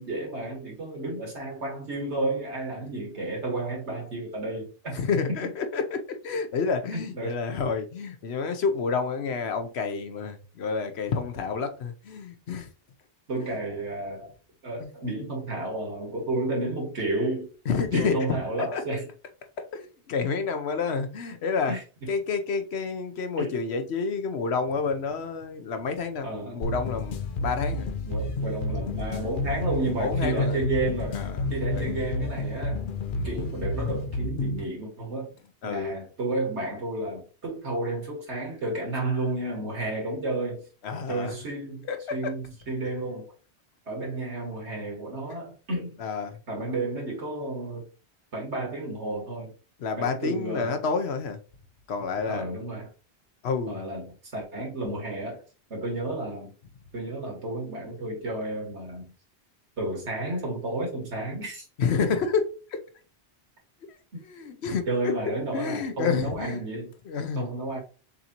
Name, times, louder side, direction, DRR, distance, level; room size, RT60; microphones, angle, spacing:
voice 1, 0.0-5.0 5.4-5.5 6.9-7.3 13.3-14.3 14.6-19.1 21.6-22.1 23.4-23.6 26.2-26.6 28.1-31.2 31.5-32.8 33.2-35.3 35.6-40.6 41.1-43.3 43.9-46.0 46.5-47.9 48.3-49.5 50.0-50.7 52.3-52.9 53.7-55.4 55.7-56.5 56.9-59.1 59.8-61.7 64.1-64.2 64.9-66.9 67.4-67.8, right 2 dB, 90° right, 2.0 m, -32 dB
voice 2, 4.9-12.7 14.8-14.9 17.7-18.3 18.7-18.8 19.7-21.8 22.1-27.2 27.4-27.9 30.0-30.6 31.1-31.9 33.1-33.3 35.6-36.0 40.8-41.3 41.8-42.3 45.3-45.4 46.0-46.4 49.8-51.4 51.9-52.5 53.4-53.8 61.8-62.8 64.2-65.1 65.5-66.6 67.1-67.5, left 5 dB, 70° left, 1.0 m, -29 dB
sound 1, 26.6-34.6, left 2 dB, 55° left, 0.7 m, -30 dB
6.5 x 2.8 x 2.9 m
omnidirectional pair, 1.1 m